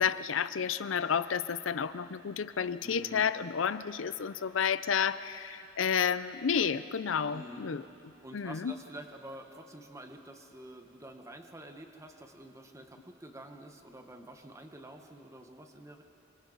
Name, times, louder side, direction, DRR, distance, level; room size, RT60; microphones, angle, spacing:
voice 1, 0.0-7.8 8.3-8.7, left 7 dB, 75° left, 14 dB, 0.5 m, -31 dB
voice 2, 2.8-3.3 7.3-7.8 8.2-16.0, right 1 dB, 15° right, 5 dB, 1.2 m, -48 dB
26.5 x 25.0 x 4.0 m, 2.8 s
head